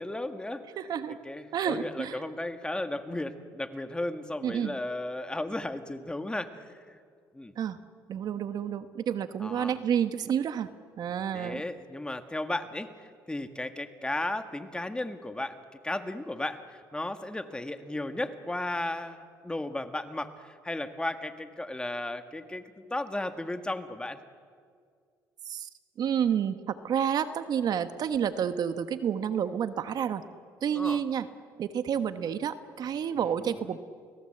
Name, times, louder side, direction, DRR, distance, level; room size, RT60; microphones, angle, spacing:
voice 1, 0.0-0.6 1.2-7.0 7.3-7.5 9.4-9.8 11.3-22.6 22.9-24.2 30.7-31.0 33.4-33.8, left 1 dB, 10° left, 8 dB, 1.7 m, -35 dB
voice 2, 0.8-1.2 1.5-2.2 4.4-4.8 7.6-7.8 8.1-10.7 11.0-11.6 25.5-25.7 26.0-30.2 30.6-31.3 31.6-33.8, right 8 dB, 60° right, 11 dB, 1.2 m, -29 dB
29.5 x 18.5 x 7.9 m, 2.1 s
cardioid pair, 90°, 8 cm